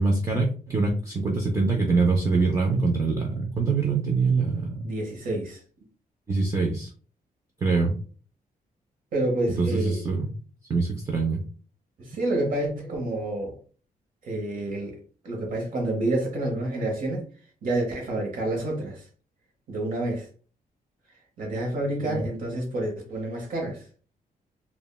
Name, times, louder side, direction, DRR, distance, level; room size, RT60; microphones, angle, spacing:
voice 1, 0.0-4.8 6.3-6.9 7.6-8.0 9.6-10.3 10.7-11.4 22.0-22.2, right 4 dB, 20° right, 0.4 m, -24 dB
voice 2, 4.8-5.6 9.1-10.0 12.0-13.6 14.2-17.3 17.6-19.0 19.7-20.3 21.4-23.8, right 1 dB, 60° right, 0.8 m, -28 dB
3.2 x 2.1 x 2.2 m
wide cardioid pair, 170°, 16 cm